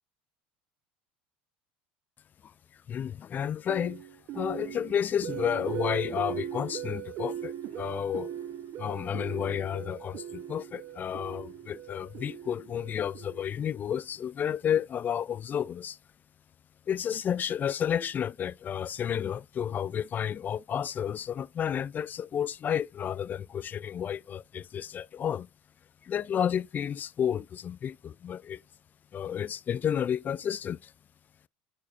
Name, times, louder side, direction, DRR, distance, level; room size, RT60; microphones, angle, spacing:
voice 1, 2.9-4.0 4.3-8.3 8.8-16.0 16.9-25.5 26.0-28.6 29.1-30.9, left 9 dB, 35° left, 0.3 m, -31 dB
sound 1, 3.7-13.8, right 11 dB, 55° right, 0.8 m, -39 dB
8.2 x 4.9 x 2.5 m
hypercardioid pair, 85°, 5 cm